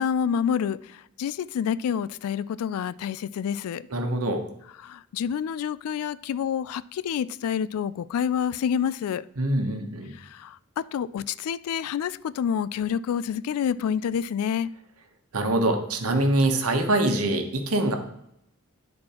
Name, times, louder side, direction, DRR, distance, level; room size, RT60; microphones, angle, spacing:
voice 1, 0.0-3.9 4.8-9.2 10.2-14.8, left 8 dB, 80° left, 0.3 m, -28 dB
voice 2, 3.9-4.4 9.4-10.1 15.3-17.9, right 1 dB, 80° right, 1.1 m, -24 dB
10.5 x 4.3 x 4.3 m
head